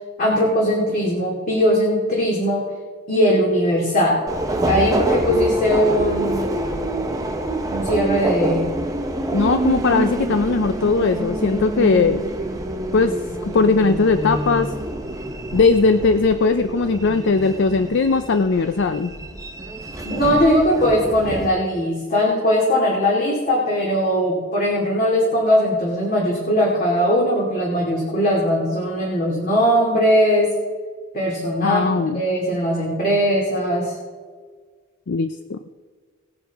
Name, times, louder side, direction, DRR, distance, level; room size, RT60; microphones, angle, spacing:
voice 1, 0.2-2.6 3.1-4.2 4.7-6.4 7.7-8.7 20.0-30.5 31.1-33.9, equal, 45° left, -4 dB, 2.5 m, -19 dB
Subway metro underground, 4.3-21.5, right 1 dB, 15° right, 0.9 m, -26 dB
voice 2, 9.3-12.2 12.9-13.1 13.4-14.7 15.5-19.1 31.6-32.2 35.1-35.6, left 4 dB, 65° left, 9 dB, 0.5 m, -19 dB
18.0 x 9.7 x 3.6 m, 1.5 s
head